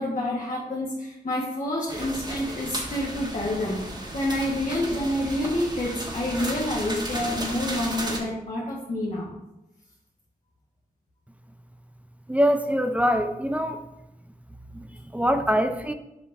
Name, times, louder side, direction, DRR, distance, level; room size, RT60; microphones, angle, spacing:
voice 1, 0.0-9.3, left 1 dB, 55° left, -5 dB, 1.4 m, -28 dB
sound 1, 1.9-8.2, right 1 dB, 30° right, 1.4 m, -34 dB
voice 2, 12.3-13.8 14.7-14.9 15.1-15.9, equal, 10° right, 8 dB, 0.5 m, -23 dB
7.7 x 5.0 x 2.6 m, 0.91 s
cardioid pair, 75°, 15 cm